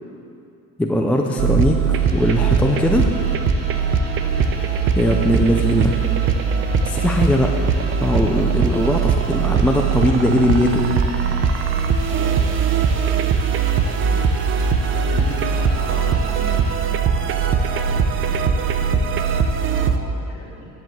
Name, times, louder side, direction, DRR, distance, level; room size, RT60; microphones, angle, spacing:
voice 1, 0.8-3.1 5.0-5.9 6.8-7.5 8.0-10.9, left 1 dB, 5° left, 2 dB, 0.3 m, -19 dB
sound 1, 1.4-20.0, right 6 dB, 35° right, 0.6 m, -20 dB
sound 2, 1.9-16.7, right 2 dB, 70° right, 2.6 m, -41 dB
voice 2, 4.2-4.5 7.4-7.6 8.5-8.9 11.9-14.4 14.7-16.7 17.1-20.7, left 3 dB, 40° left, -6 dB, 3.4 m, -38 dB
10.5 x 7.9 x 7.5 m, 2.6 s
cardioid pair, 155°, 35 cm